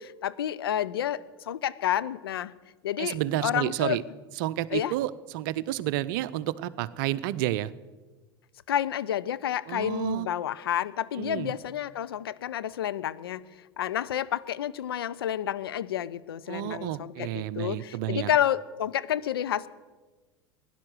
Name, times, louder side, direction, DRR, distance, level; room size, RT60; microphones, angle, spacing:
voice 1, 0.0-2.5 2.8-4.0 4.7-4.9 8.7-13.4 13.8-19.7, left 11 dB, 70° left, 15 dB, 0.5 m, -30 dB
voice 2, 3.0-4.0 4.4-7.7 9.7-10.3 11.2-11.6 16.5-18.3, right 14 dB, 55° right, 17 dB, 0.6 m, -30 dB
16.0 x 10.5 x 6.4 m, 1.3 s
figure-of-eight pair, 80°, 13 cm